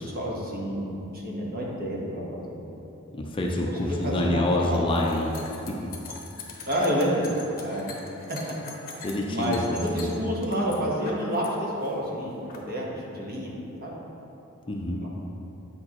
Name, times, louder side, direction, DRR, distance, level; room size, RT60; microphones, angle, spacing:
voice 1, 0.0-2.6 3.7-4.8 6.7-7.3 7.6-7.9 9.2-13.5 13.8-13.9 15.0-15.1, equal, 45° right, -3 dB, 1.3 m, -29 dB
voice 2, 3.1-5.9 9.0-9.6 10.0-10.3 14.7-15.0, left 1 dB, 25° left, -1 dB, 0.5 m, -27 dB
sound 1, 3.8-11.5 11.8-12.6, left 3 dB, 45° left, 1.0 m, -43 dB
8.7 x 6.4 x 3.0 m, 3.0 s
head